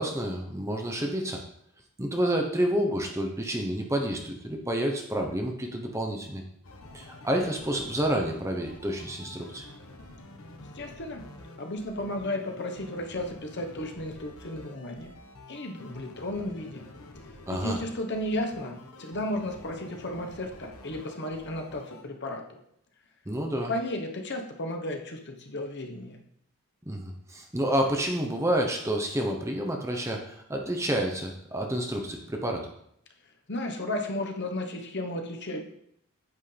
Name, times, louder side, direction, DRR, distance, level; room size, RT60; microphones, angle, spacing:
voice 1, 0.0-1.4 2.0-6.4 6.9-9.6 17.5-17.8 23.3-23.7 26.9-32.7, right 1 dB, 15° right, 2 dB, 0.9 m, -29 dB
sound 1, 6.6-22.0, left 2 dB, 70° left, 1.2 m, -48 dB
voice 2, 10.7-11.2 11.6-15.1 15.5-16.8 17.5-22.6 23.7-26.2 33.5-35.6, left 1 dB, 50° left, 3 dB, 1.2 m, -34 dB
9.5 x 8.3 x 3.4 m, 0.72 s
head